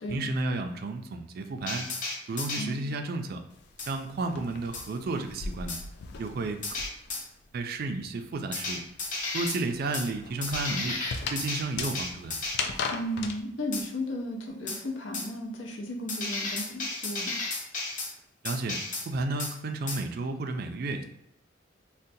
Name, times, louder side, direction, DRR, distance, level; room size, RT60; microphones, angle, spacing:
voice 1, 0.1-1.9 2.3-3.4 3.9-5.8 6.2-6.6 7.5-8.8 9.3-11.0 11.3-12.4 18.4-21.0, right 3 dB, 55° right, 6 dB, 0.3 m, -32 dB
sound 1, 1.7-2.6 3.8-3.9 4.7-4.9 5.7-5.8 6.6-7.2 8.5-9.6 9.9-10.1 10.4-12.6 13.7-13.9 14.7-14.8 15.1-15.3 16.1-18.1 18.5-19.1 19.4-19.5 19.9-20.0, left 3 dB, 45° left, 0.8 m, -33 dB
voice 2, 2.5-2.9 12.9-17.3, equal, 85° left, 0 dB, 0.7 m, -35 dB
sound 2, 3.5-7.3 7.5-13.4, left 4 dB, 60° left, 0.3 m, -38 dB
3.9 x 2.1 x 2.6 m, 0.81 s
head